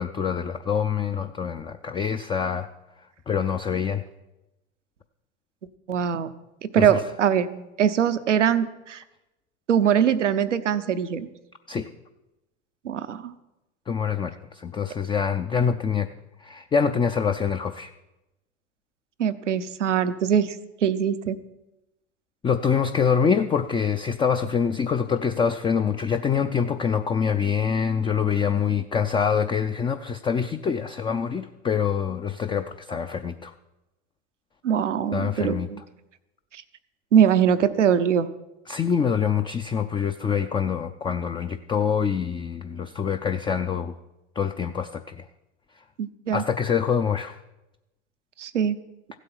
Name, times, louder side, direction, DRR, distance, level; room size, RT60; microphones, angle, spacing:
voice 1, 0.0-2.7 3.3-4.0 6.8-7.0 11.7-11.9 13.9-16.1 16.4-17.9 22.4-33.5 35.1-35.7 38.7-43.9 44.4-45.2 46.3-47.4, left 6 dB, 15° left, 7 dB, 0.4 m, -25 dB
voice 2, 5.9-6.3 6.7-9.0 9.7-11.3 12.8-13.3 19.2-20.5 20.8-21.4 34.6-35.8 37.1-38.3 46.0-46.4 48.4-48.8, right 8 dB, 90° right, 12 dB, 0.8 m, -22 dB
15.0 x 8.3 x 5.7 m, 0.96 s
hypercardioid pair, 90°, 35 cm